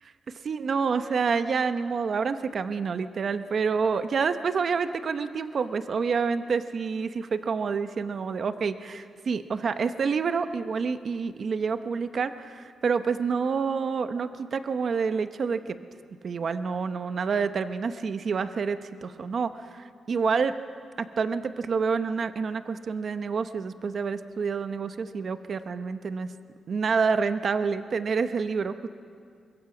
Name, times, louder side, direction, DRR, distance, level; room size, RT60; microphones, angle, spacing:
voice 1, 0.4-15.8 16.2-20.5 21.0-26.3 26.7-28.9, right 5 dB, 50° right, 10 dB, 0.8 m, -28 dB
23.5 x 22.0 x 6.1 m, 2.2 s
cardioid pair, 120°, 0 cm